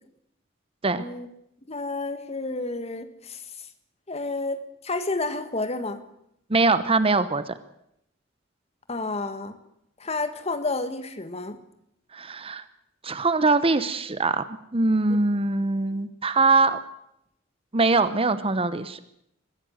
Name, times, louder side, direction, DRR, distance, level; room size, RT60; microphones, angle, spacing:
voice 1, 1.7-3.7 4.1-6.0 8.9-9.6 10.0-11.6 15.1-15.2, left 3 dB, 35° left, 10 dB, 1.7 m, -30 dB
voice 2, 6.5-7.5 12.1-12.6 13.0-16.8 17.7-19.0, right 3 dB, 30° right, 13 dB, 0.9 m, -22 dB
22.0 x 15.0 x 8.0 m, 0.77 s
head